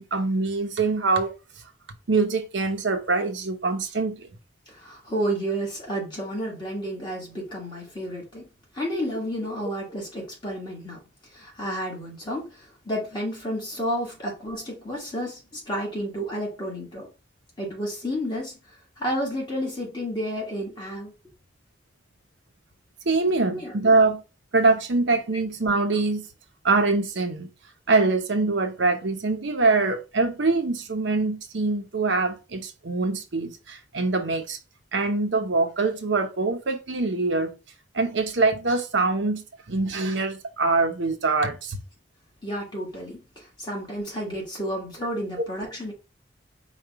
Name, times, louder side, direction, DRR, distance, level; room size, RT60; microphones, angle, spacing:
voice 1, 0.0-1.3 2.1-4.3 23.1-24.2 24.5-26.3 26.6-27.5 27.9-34.6 34.9-37.5 37.9-41.8, right 3 dB, 75° right, 0.8 m, -24 dB
voice 2, 4.7-8.4 8.7-11.0 11.3-17.1 17.6-21.1 23.3-23.7 42.4-45.9, equal, 25° left, 1.6 m, -31 dB
4.9 x 2.4 x 4.5 m
head